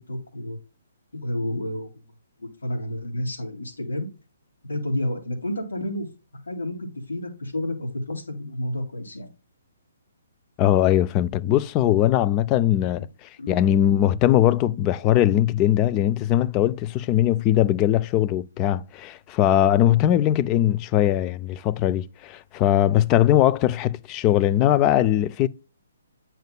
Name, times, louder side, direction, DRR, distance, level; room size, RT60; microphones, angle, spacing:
voice 1, 0.1-0.6 1.2-1.9 2.4-4.1 4.7-6.1 6.5-9.3 13.4-13.7, left 1 dB, 80° left, 2.5 m, -30 dB
voice 2, 10.6-25.5, left 12 dB, 25° left, 0.4 m, -20 dB
9.0 x 5.7 x 2.2 m
figure-of-eight pair, 135°, 0 cm